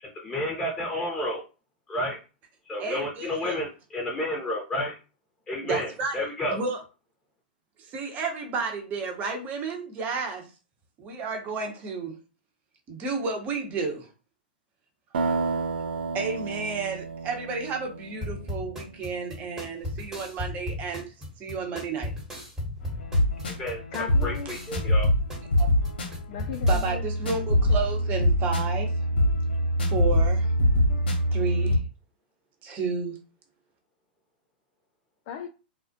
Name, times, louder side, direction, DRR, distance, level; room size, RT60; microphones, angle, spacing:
voice 1, 0.0-1.4 1.9-2.2 2.7-4.9 5.5-6.6 23.4-23.8 24.2-25.1, left 1 dB, 15° left, 0.7 m, -31 dB
voice 2, 2.8-3.6 5.6-6.8 7.8-10.5 11.0-12.2 12.9-14.1 16.1-22.1 25.6-25.7 26.7-28.9 29.9-30.5 31.3-31.8 32.6-33.2, right 4 dB, 30° right, 0.8 m, -32 dB
sound 1, 15.1-18.9, right 4 dB, 80° right, 0.5 m, -31 dB
sound 2, 18.2-26.9, left 1 dB, 10° right, 1.0 m, -36 dB
sound 3, 22.8-31.8, left 1 dB, 80° left, 0.7 m, -24 dB
voice 3, 23.9-24.6 26.3-27.0 35.3-35.5, left 7 dB, 45° left, 0.3 m, -36 dB
2.4 x 2.0 x 2.6 m
hypercardioid pair, 115°, 5 cm